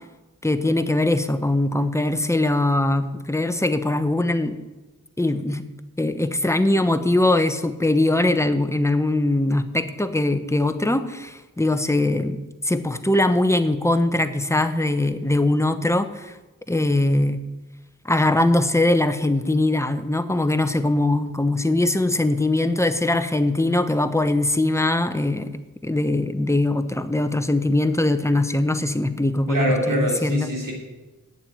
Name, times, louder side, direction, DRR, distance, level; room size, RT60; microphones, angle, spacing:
voice 1, 0.4-4.6 5.2-5.6 6.0-12.4 12.6-16.4 16.7-17.4 18.0-25.5 25.8-30.5, left 2 dB, 10° left, 10 dB, 0.9 m, -21 dB
voice 2, 29.5-30.7, equal, 75° right, -1 dB, 3.5 m, -24 dB
9.1 x 7.2 x 8.7 m, 1.1 s
cardioid pair, 55°, 33 cm